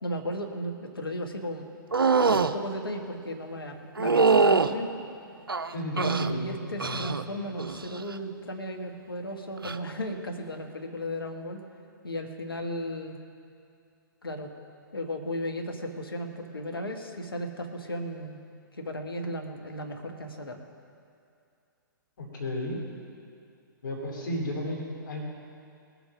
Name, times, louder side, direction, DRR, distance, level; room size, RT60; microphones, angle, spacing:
voice 1, 0.0-1.7 2.3-4.9 5.9-11.6 12.0-13.2 14.2-14.5 14.9-18.4 18.7-20.6, equal, 80° left, 3 dB, 1.4 m, -35 dB
sound 1, 1.9-2.5 4.0-4.7 5.5-6.3 6.8-7.2 7.6-8.0 9.6-9.8, right 4 dB, 85° right, 0.6 m, -23 dB
voice 2, 5.7-7.2 22.2-22.8 23.8-25.2, left 1 dB, 65° left, -1 dB, 2.7 m, -34 dB
20.0 x 7.1 x 6.0 m, 2.5 s
figure-of-eight pair, 120°, 12 cm